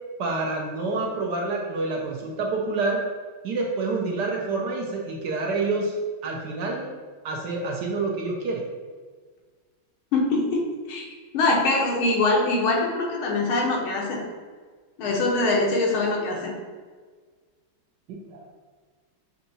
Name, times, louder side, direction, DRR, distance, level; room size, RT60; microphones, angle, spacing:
voice 1, 0.2-3.0 3.4-5.9 6.2-6.9 7.2-8.6 18.1-18.6, right 3 dB, 70° right, -1 dB, 1.1 m, -28 dB
voice 2, 10.1-11.1 11.3-14.2 15.0-16.5, left 2 dB, 90° left, -1 dB, 1.8 m, -23 dB
6.5 x 2.7 x 2.7 m, 1.5 s
omnidirectional pair, 2.2 m